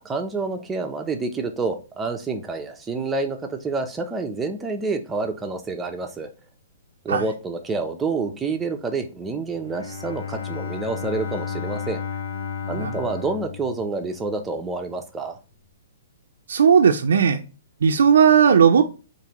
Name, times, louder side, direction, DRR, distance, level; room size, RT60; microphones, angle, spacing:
voice 1, 0.0-6.3 7.0-12.0 12.7-15.4, right 3 dB, 10° right, 0.5 m, -28 dB
Bowed string instrument, 9.5-14.5, left 6 dB, 90° left, 0.7 m, -33 dB
voice 2, 16.5-17.4 17.8-18.8, right 7 dB, 80° right, 0.4 m, -16 dB
4.7 x 2.5 x 2.9 m
hypercardioid pair, 150°, 0 cm